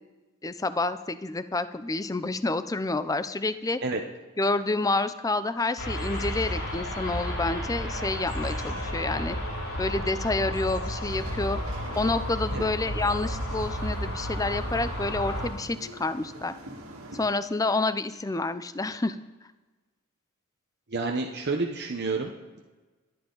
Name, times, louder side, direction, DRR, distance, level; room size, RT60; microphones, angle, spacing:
voice 1, 0.4-3.8 4.4-9.4 9.8-11.6 12.0-16.5 17.1-19.2, left 2 dB, 15° left, 12 dB, 0.5 m, -28 dB
sound 1, 5.8-15.5, equal, 70° left, 3.5 m, -32 dB
sound 2, 11.1-17.3, right 1 dB, 70° right, 2.0 m, -45 dB
voice 2, 20.9-22.3, right 3 dB, 50° right, 1 dB, 1.0 m, -29 dB
28.5 x 10.5 x 3.9 m, 1.3 s
head